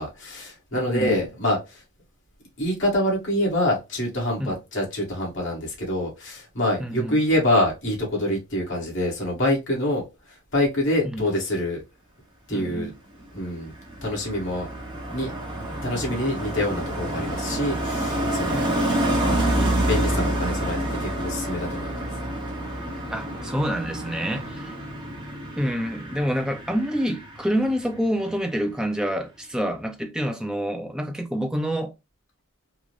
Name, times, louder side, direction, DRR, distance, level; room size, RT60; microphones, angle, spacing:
voice 1, 0.0-1.8 2.6-11.8 12.5-12.9 13.3-13.7 14.0-14.7 15.0-15.3 15.8-18.7 19.2-22.1, left 1 dB, 60° left, 1.5 m, -26 dB
voice 2, 0.7-1.2 4.4-4.6 6.8-7.2 11.1-11.3 12.5-12.9 18.5-19.0 23.1-24.8 25.6-31.9, equal, 5° right, 0.3 m, -27 dB
Car passing by, 13.2-28.0 28.3-28.6, right 1 dB, 20° right, 0.8 m, -28 dB
3.7 x 2.1 x 3.1 m
head